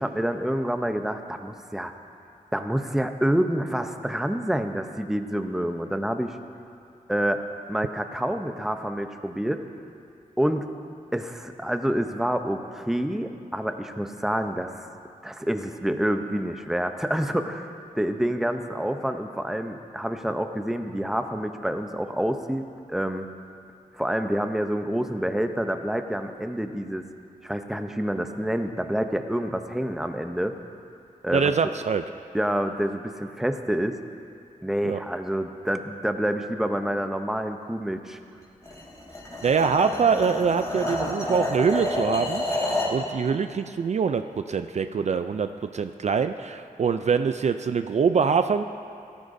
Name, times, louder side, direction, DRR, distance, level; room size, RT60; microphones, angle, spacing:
voice 1, 0.0-1.9 2.5-6.4 7.1-7.4 7.7-9.6 10.4-10.7 11.1-14.9 15.2-23.3 23.9-27.1 27.4-30.5 31.2-31.5 32.3-34.0 34.6-38.2, equal, 5° right, 6 dB, 0.6 m, -27 dB
voice 2, 31.3-32.0 34.8-35.0 39.4-48.6, right 6 dB, 50° right, 9 dB, 0.4 m, -24 dB
sound 1, 38.6-43.0, left 1 dB, 20° left, 3.0 m, -29 dB
16.5 x 13.5 x 2.6 m, 2.5 s
wide cardioid pair, 90°, 15 cm